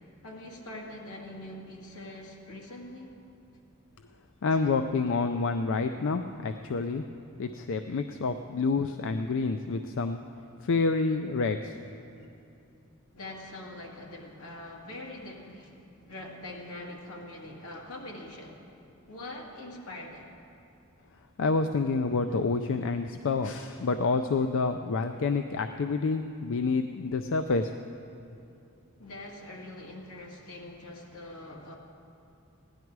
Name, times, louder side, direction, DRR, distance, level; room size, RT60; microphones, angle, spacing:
voice 1, 0.0-3.1 4.5-4.8 13.1-18.7 19.1-20.3 29.0-31.8, left 1 dB, 80° left, -1 dB, 2.0 m, -43 dB
voice 2, 4.4-7.0 7.4-10.2 10.6-11.7 21.4-27.7, left 4 dB, 60° left, 8 dB, 0.4 m, -28 dB
16.5 x 11.0 x 4.7 m, 2.8 s
head